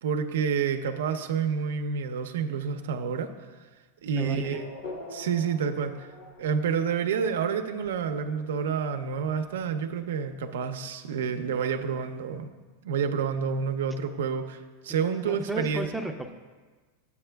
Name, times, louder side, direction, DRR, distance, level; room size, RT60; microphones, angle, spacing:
voice 1, 0.0-3.5 4.0-4.6 5.1-6.1 6.4-12.5 12.8-15.9, right 6 dB, 90° right, 8 dB, 0.6 m, -29 dB
voice 2, 4.2-4.6 15.2-16.3, right 1 dB, ahead, 4 dB, 0.5 m, -34 dB
Race car auto racing / Accelerating revving vroom, 4.5-10.6, left 3 dB, 70° left, 1.3 m, -46 dB
12.5 x 8.3 x 2.3 m, 1.3 s
supercardioid pair, 145°, 0 cm